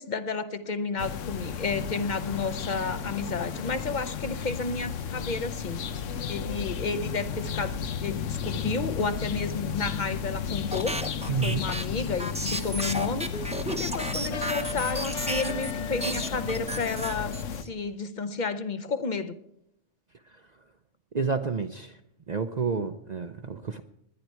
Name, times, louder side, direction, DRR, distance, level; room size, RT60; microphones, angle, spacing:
voice 1, 0.0-5.9 6.3-11.0 11.3-19.4, left 4 dB, 45° left, 0.8 m, -31 dB
sound 1, 1.0-17.6, left 7 dB, 85° left, 1.2 m, -33 dB
sound 2, 10.7-15.7 16.0-17.7, right 1 dB, 5° right, 0.7 m, -33 dB
voice 2, 11.3-11.7 20.3-20.4 21.1-22.0 22.3-23.8, right 5 dB, 45° right, 0.6 m, -30 dB
20.0 x 10.5 x 4.6 m
omnidirectional pair, 1.2 m